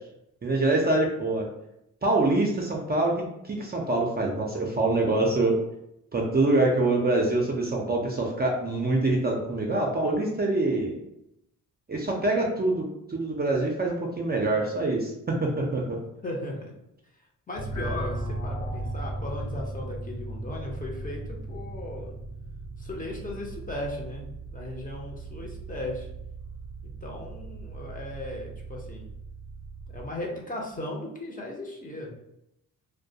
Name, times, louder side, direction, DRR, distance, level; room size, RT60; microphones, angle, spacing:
voice 1, 0.4-1.5 2.0-5.6 6.1-11.0 11.9-16.0, right 2 dB, 25° right, -1 dB, 0.5 m, -25 dB
voice 2, 16.2-16.6 17.5-22.1 22.8-26.1 27.0-29.1 29.9-32.1, left 1 dB, 25° left, -1 dB, 0.7 m, -37 dB
sound 1, 17.5-30.0, right 2 dB, 55° left, 0.9 m, -37 dB
2.2 x 2.1 x 2.7 m, 0.82 s
cardioid pair, 60°, 35 cm